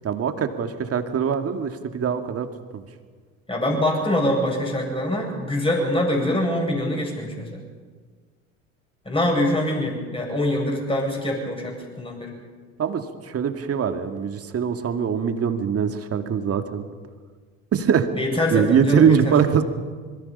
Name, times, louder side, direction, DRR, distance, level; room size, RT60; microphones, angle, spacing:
voice 1, 0.0-2.5 2.7-2.9 12.8-16.8 17.7-18.1 18.5-19.6, right 7 dB, 35° right, 7 dB, 2.3 m, -22 dB
voice 2, 3.5-7.6 9.0-12.3 18.1-19.3, left 1 dB, 15° left, 1 dB, 7.9 m, -24 dB
26.0 x 22.5 x 5.6 m, 1.5 s
hypercardioid pair, 75°, 39 cm